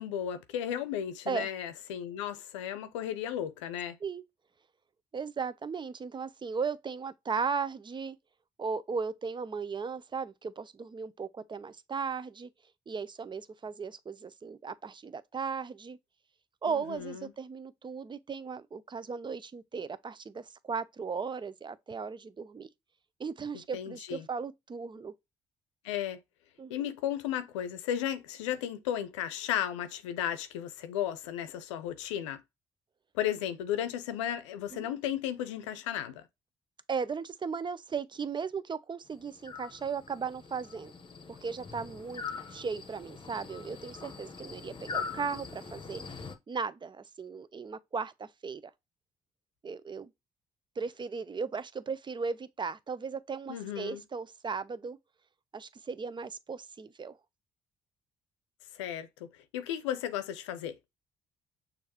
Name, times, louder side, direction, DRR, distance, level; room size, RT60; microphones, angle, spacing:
voice 1, 0.0-4.0 16.7-17.3 23.7-24.3 25.8-26.2 26.7-32.4 33.1-36.2 53.5-54.0 58.7-60.8, left 10 dB, 85° left, 0.6 m, -34 dB
voice 2, 5.1-8.2 8.6-12.5 12.9-16.0 16.6-22.7 23.2-25.1 26.6-26.9 34.7-34.9 36.9-40.9 41.3-42.2 42.5-46.0 46.5-48.7 49.6-50.1 50.8-55.0 55.5-57.2, right 5 dB, 30° right, 0.6 m, -36 dB
sound 1, 39.1-46.4, left 5 dB, 35° left, 0.9 m, -42 dB
6.4 x 2.6 x 2.9 m
hypercardioid pair, 50°, 15 cm